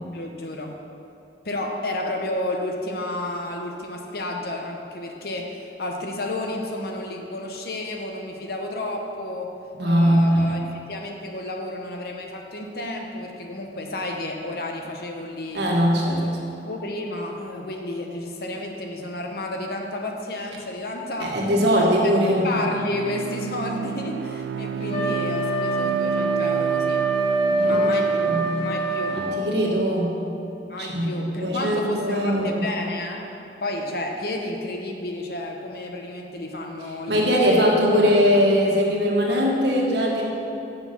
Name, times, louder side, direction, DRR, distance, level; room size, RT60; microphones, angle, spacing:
voice 1, 0.1-0.8 1.4-9.5 9.8-15.7 16.0-16.3 16.6-22.1 22.4-27.1 27.6-28.3 28.6-29.2 30.7-33.3 33.6-37.7 38.3-38.4, left 1 dB, 60° left, 2 dB, 0.9 m, -31 dB
voice 2, 9.8-10.4 15.5-16.3 21.2-22.4 24.9-25.0 27.5-27.8 28.1-28.4 29.1-30.1 30.8-31.1 31.4-32.6 37.1-40.2, equal, 70° right, -3 dB, 1.6 m, -21 dB
Bowed string instrument, 21.9-29.6, right 7 dB, 90° right, 0.3 m, -32 dB
Wind instrument woodwind instrument, 24.9-29.3, right 3 dB, 35° left, 1.0 m, -24 dB
7.2 x 6.4 x 6.0 m, 2.7 s
head